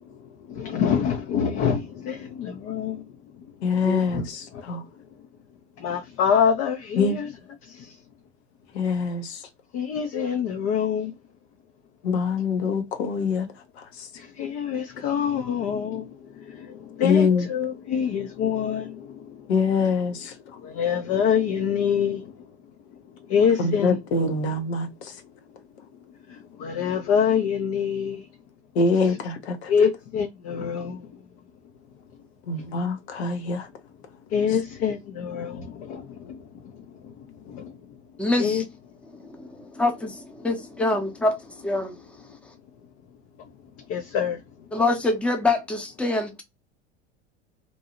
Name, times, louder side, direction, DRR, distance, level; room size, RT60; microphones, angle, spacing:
voice 1, 0.0-5.1 5.8-7.3 7.6-8.0 9.7-11.1 14.2-19.5 19.8-19.9 20.2-22.6 22.9-24.0 25.2-25.3 26.1-28.3 29.0-29.2 29.7-31.2 32.6-32.7 34.3-38.0 38.4-38.6 39.1-39.4 42.2-42.4 43.8-44.7, left 7 dB, 40° left, 0.5 m, -27 dB
voice 2, 3.6-4.8 7.0-7.2 8.7-9.4 12.0-13.5 13.8-14.1 17.0-17.5 19.5-20.3 23.6-24.9 28.7-29.7 32.5-33.7, left 4 dB, 70° left, 0.8 m, -24 dB
voice 3, 38.2-38.6 39.2-41.4 41.6-41.9 44.7-46.4, left 2 dB, 5° left, 0.7 m, -25 dB
2.6 x 2.3 x 2.7 m
hypercardioid pair, 80°, 34 cm